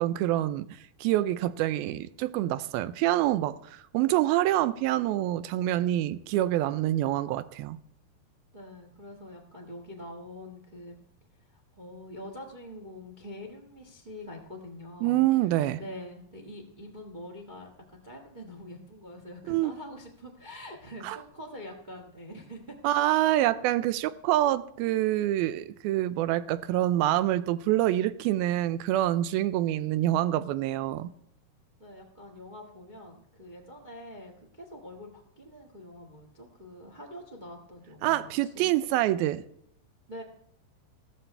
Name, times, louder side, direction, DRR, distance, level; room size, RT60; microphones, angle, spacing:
voice 1, 0.0-7.8 15.0-15.8 19.5-19.7 21.0-21.2 22.8-31.1 38.0-39.4, right 14 dB, 85° right, 2.4 m, -26 dB
voice 2, 8.5-10.9 11.5-22.8 31.8-38.7 40.1-40.2, left 1 dB, 35° right, 0.7 m, -45 dB
15.5 x 13.0 x 3.4 m
omnidirectional pair, 4.3 m